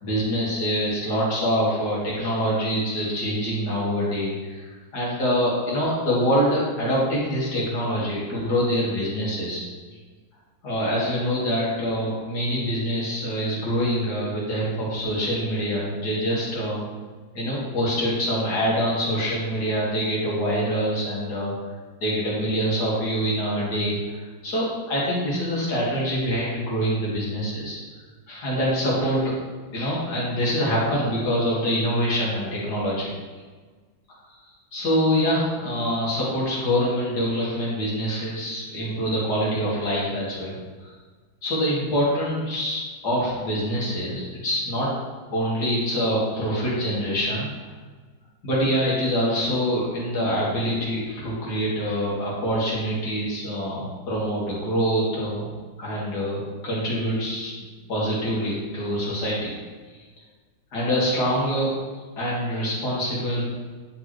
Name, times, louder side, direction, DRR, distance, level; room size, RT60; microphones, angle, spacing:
voice 1, 0.0-9.6 10.6-16.9 17.3-21.5 22.0-27.8 28.3-29.3 29.7-33.1 34.7-40.6 40.8-40.9 41.4-44.9 45.3-47.5 48.4-55.5 55.8-57.5 57.9-59.5 60.7-61.7 62.2-63.5, equal, 55° left, -6 dB, 2.5 m, -25 dB
9.6 x 4.2 x 3.2 m, 1.4 s
omnidirectional pair, 2.1 m